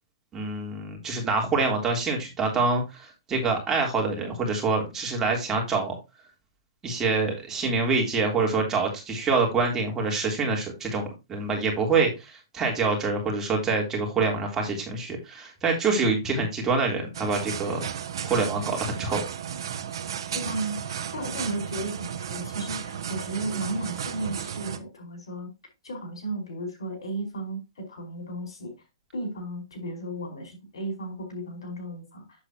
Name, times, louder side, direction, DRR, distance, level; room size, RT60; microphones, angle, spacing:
voice 1, 0.3-5.9 6.8-17.8 18.2-19.2, right 4 dB, 20° right, 1 dB, 3.3 m, -26 dB
sound 1, 17.1-24.8, right 8 dB, 70° right, 1.1 m, -34 dB
voice 2, 20.3-25.5 25.8-28.7 29.1-32.2, right 2 dB, 80° left, 3 dB, 5.0 m, -34 dB
8.0 x 7.8 x 2.9 m, 0.24 s
hypercardioid pair, 130°, 3 cm